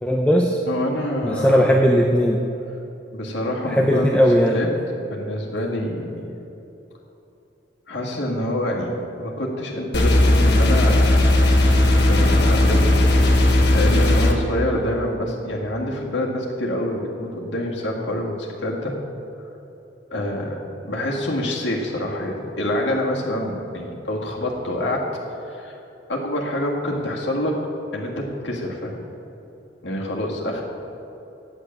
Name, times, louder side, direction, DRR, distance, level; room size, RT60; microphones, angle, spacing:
voice 1, 0.0-0.6 1.2-2.4 3.6-4.6, equal, 5° left, 1 dB, 0.5 m, -18 dB
voice 2, 0.7-1.7 3.1-4.2 4.5-4.7 5.0-6.1 7.9-8.9 9.2-11.4 12.0-12.9 13.7-18.9 20.1-25.0 25.4-25.8 26.1-27.6 27.9-29.0 29.8-30.6, left 1 dB, 80° left, -2 dB, 1.9 m, -26 dB
sound 1, 9.9-14.3, left 1 dB, 65° left, 1.3 m, -16 dB
8.4 x 8.0 x 8.8 m, 3.0 s
head